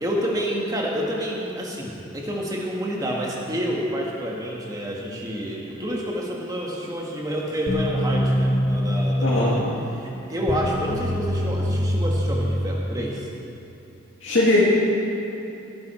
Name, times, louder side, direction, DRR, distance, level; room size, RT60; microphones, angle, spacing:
voice 1, 0.0-9.6 10.0-13.3, equal, 15° right, -3 dB, 1.7 m, -28 dB
sound 1, 7.7-13.3, equal, 40° left, 1.4 m, -24 dB
voice 2, 9.2-9.6 14.2-14.7, left 1 dB, 70° left, -8 dB, 2.2 m, -19 dB
18.5 x 10.5 x 4.5 m, 2.9 s
head